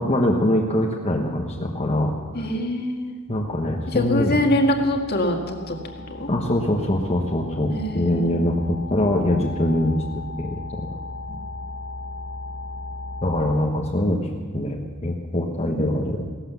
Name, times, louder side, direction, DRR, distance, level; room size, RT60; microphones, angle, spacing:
voice 1, 0.0-2.1 3.3-4.4 6.3-10.0 10.4-10.9 13.2-14.3 14.5-16.2, left 1 dB, 30° left, -1 dB, 1.2 m, -23 dB
voice 2, 2.3-3.1 3.9-5.8 6.2-6.3 7.7-8.4 15.6-15.8, left 1 dB, 50° left, 3 dB, 1.9 m, -24 dB
sound 1, 3.3-13.6, left 2 dB, 65° left, 1.4 m, -37 dB
17.0 x 12.0 x 7.0 m, 1.5 s
head